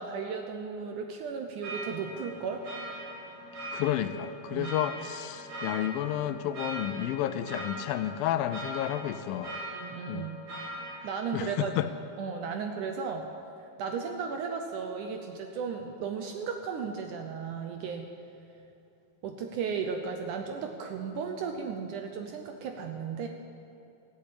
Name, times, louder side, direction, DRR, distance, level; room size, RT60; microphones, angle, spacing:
voice 1, 0.0-2.6 4.5-4.7 9.7-10.4 11.0-11.7 12.2-13.3 13.8-18.1 19.2-23.3, right 6 dB, 75° right, 4 dB, 1.9 m, -35 dB
sound 1, 1.6-11.0, right 1 dB, 55° right, 5.7 m, -41 dB
voice 2, 3.7-9.6 10.1-10.2 11.0-11.1 11.3-11.9, left 11 dB, 80° left, 12 dB, 2.3 m, -31 dB
15.5 x 8.4 x 8.6 m, 2.8 s
omnidirectional pair, 4.3 m